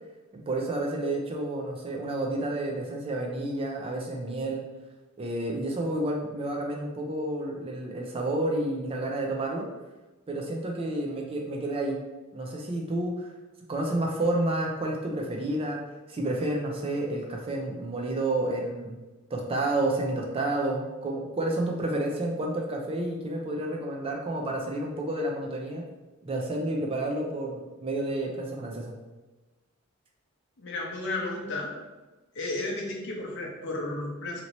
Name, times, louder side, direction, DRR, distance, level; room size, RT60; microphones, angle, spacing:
voice 1, 0.5-4.6 5.2-9.7 10.3-12.0 12.3-13.3 13.7-15.8 16.1-19.0 19.3-25.8 26.2-28.9, right 1 dB, 25° right, 0 dB, 0.4 m, -30 dB
voice 2, 30.6-31.7 32.3-34.4, left 2 dB, 60° left, -1 dB, 0.7 m, -33 dB
2.9 x 2.7 x 3.0 m, 1.1 s
head